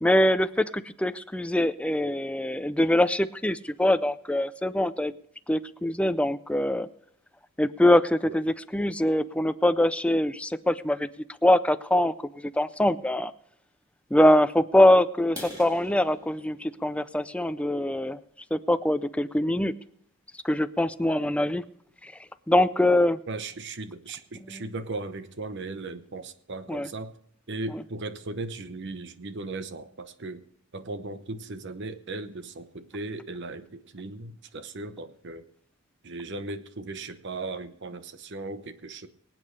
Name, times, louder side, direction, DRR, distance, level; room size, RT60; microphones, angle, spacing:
voice 1, 0.0-5.1 5.5-6.9 7.6-11.1 11.4-13.3 14.1-18.2 18.5-19.7 20.4-21.6 22.0-22.1 22.5-23.2 24.5-24.6 26.7-26.9, left 1 dB, 5° left, 12 dB, 0.4 m, -23 dB
sound 1, 15.2-19.0 19.5-19.7 20.2-20.3 20.7-20.9 21.2-21.3 21.7-21.8 22.1-22.6, equal, 20° right, 3.6 m, -46 dB
voice 2, 23.3-27.2 27.5-30.4 30.7-35.4 36.0-39.1, right 2 dB, 55° right, 11 dB, 0.9 m, -37 dB
24.0 x 8.6 x 3.3 m, 0.70 s
head